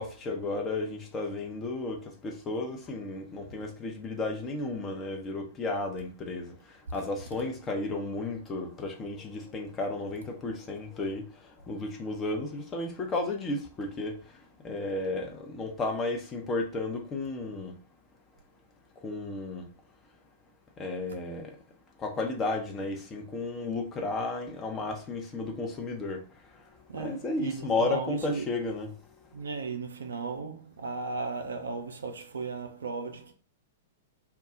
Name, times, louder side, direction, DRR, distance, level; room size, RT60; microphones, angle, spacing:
voice 1, 0.0-6.5 6.9-11.2 11.7-14.2 14.6-17.7 19.0-19.7 20.8-21.5 22.0-26.2 26.9-28.9, left 2 dB, 20° left, 0.6 m, -33 dB
voice 2, 26.9-28.5 29.3-33.3, right 4 dB, 65° right, 0.4 m, -36 dB
2.2 x 2.0 x 3.7 m
figure-of-eight pair, 100°, 0 cm